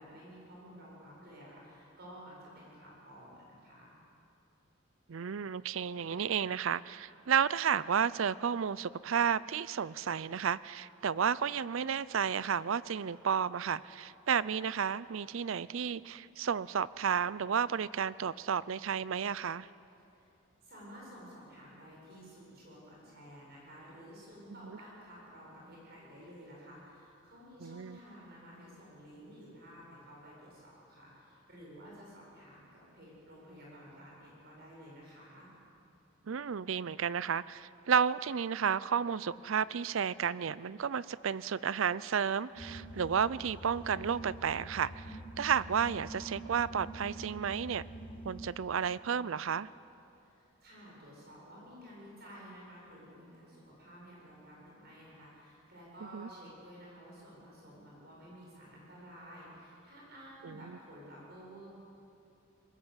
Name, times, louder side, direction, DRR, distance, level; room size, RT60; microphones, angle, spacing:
voice 1, 0.0-3.9 20.1-20.3 20.6-35.5 50.2-61.7, equal, 50° right, -4 dB, 7.6 m, -52 dB
voice 2, 5.1-19.7 27.6-28.0 36.3-47.8 48.2-49.7 56.1-56.3 60.4-60.8, right 7 dB, 70° right, 19 dB, 0.5 m, -32 dB
sound 1, 42.6-48.5, right 1 dB, 25° left, 1.4 m, -46 dB
22.5 x 20.0 x 8.1 m, 2.7 s
head